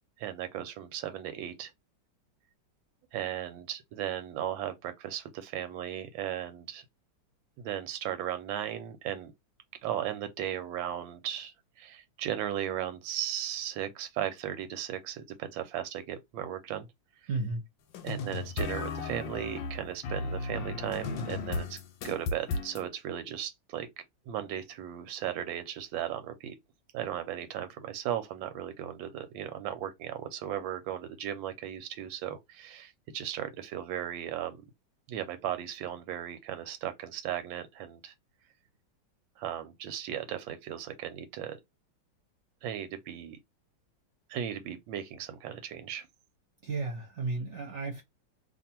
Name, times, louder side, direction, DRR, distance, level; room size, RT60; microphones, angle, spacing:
voice 1, 0.2-1.7 3.1-6.8 7.6-9.3 9.8-16.9 17.2-17.3 18.0-21.8 22.0-23.9 24.3-26.5 26.9-34.6 35.1-38.1 39.4-41.6 42.6-43.4 44.3-46.1, right 10 dB, 90° right, 1.3 m, -36 dB
voice 2, 17.3-17.6 46.6-48.0, right 3 dB, 50° right, 1.0 m, -33 dB
sound 1, 17.9-22.8, left 3 dB, 90° left, 1.4 m, -35 dB
2.7 x 2.6 x 4.2 m
omnidirectional pair, 2.0 m